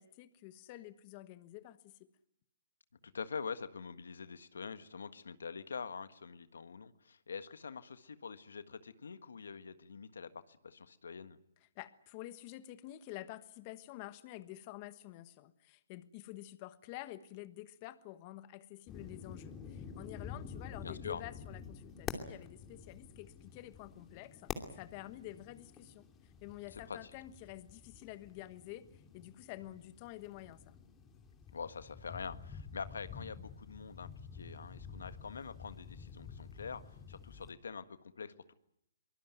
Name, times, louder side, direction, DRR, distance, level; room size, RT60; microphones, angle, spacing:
voice 1, 0.0-1.9 11.7-26.1 26.4-30.8, left 15 dB, 35° left, 12 dB, 1.3 m, -49 dB
voice 2, 3.0-11.4 20.8-21.2 26.7-27.0 31.5-36.8 37.1-38.5, left 5 dB, 85° left, 11 dB, 1.5 m, -45 dB
sound 1, 18.9-37.5, left 6 dB, 20° left, 2.7 m, -49 dB
23.5 x 20.0 x 9.3 m, 0.77 s
hypercardioid pair, 145°, 0 cm